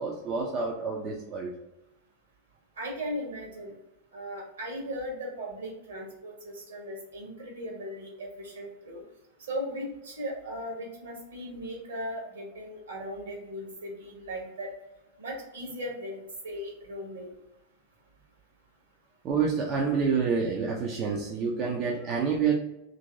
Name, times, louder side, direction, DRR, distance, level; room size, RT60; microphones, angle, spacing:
voice 1, 0.0-1.5 19.2-22.5, right 5 dB, 35° right, -1 dB, 0.5 m, -28 dB
voice 2, 2.8-3.7 4.1-9.0 9.4-14.7 15.2-17.3, equal, 65° right, -1 dB, 1.1 m, -37 dB
3.0 x 2.6 x 3.4 m, 0.89 s
figure-of-eight pair, 90°, 0 cm